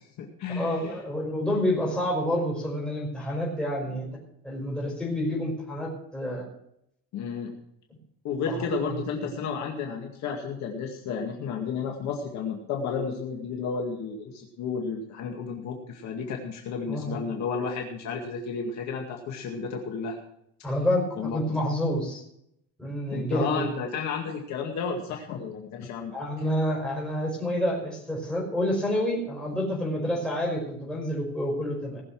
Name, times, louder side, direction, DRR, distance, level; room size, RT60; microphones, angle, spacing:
voice 1, 0.0-0.9 7.1-7.5 8.2-20.2 20.6-20.7 21.2-21.4 23.1-26.1, left 5 dB, 50° left, 1 dB, 2.1 m, -32 dB
voice 2, 0.6-4.1 4.4-6.5 8.5-9.0 16.9-17.2 20.6-22.2 22.8-23.6 26.1-32.0, left 1 dB, ahead, -3 dB, 5.3 m, -28 dB
19.0 x 7.0 x 6.1 m, 0.75 s
cardioid pair, 165°, 36 cm